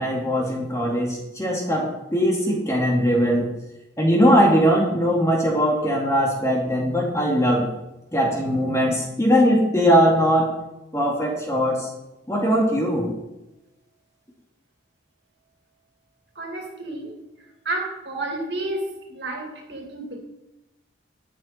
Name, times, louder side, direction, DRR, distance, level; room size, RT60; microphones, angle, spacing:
voice 1, 0.0-3.5 4.0-7.7 8.1-10.5 10.9-11.9 12.3-13.1, equal, 15° left, -1 dB, 2.1 m, -20 dB
voice 2, 16.3-17.1 17.6-20.2, right 2 dB, 60° right, 0 dB, 2.6 m, -31 dB
12.5 x 8.7 x 4.4 m, 0.97 s
head